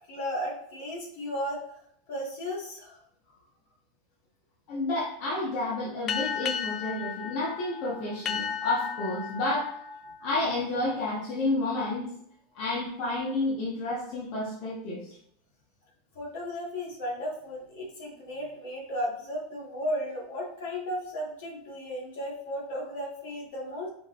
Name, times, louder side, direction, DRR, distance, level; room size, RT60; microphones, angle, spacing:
voice 1, 0.1-1.6 2.1-3.0 16.2-23.9, equal, 75° left, -3 dB, 1.9 m, -34 dB
voice 2, 4.7-9.8 10.2-12.1 12.5-15.1, left 2 dB, 60° left, -7 dB, 1.4 m, -30 dB
sound 1, 6.1-11.2, left 7 dB, 35° left, 0.3 m, -35 dB
5.0 x 3.6 x 2.6 m, 0.70 s
supercardioid pair, 130°, 0 cm